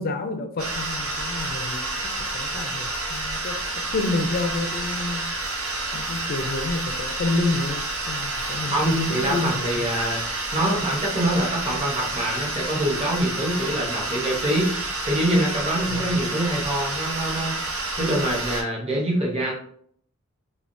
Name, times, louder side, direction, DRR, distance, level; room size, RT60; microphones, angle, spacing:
voice 1, 0.0-5.3 5.9-9.9 13.5-13.9 15.9-16.2, left 3 dB, 45° left, 0.3 m, -29 dB
sound 1, 0.6-18.6, right 2 dB, 65° right, 0.8 m, -29 dB
voice 2, 8.7-14.8 15.0-17.6 18.0-19.5, right 1 dB, 25° right, 0.8 m, -25 dB
3.4 x 2.2 x 2.5 m
head